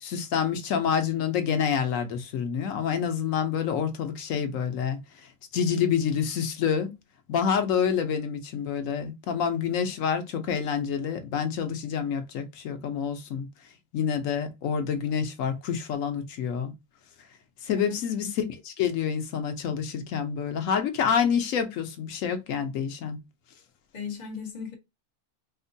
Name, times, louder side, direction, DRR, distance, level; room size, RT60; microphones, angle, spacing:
voice 1, 0.0-6.9 7.3-13.5 13.9-16.7 17.6-23.2, left 7 dB, 85° left, 1.1 m, -28 dB
voice 2, 23.9-24.7, left 6 dB, 35° left, 1.1 m, -36 dB
4.6 x 2.1 x 2.6 m
omnidirectional pair, 1.3 m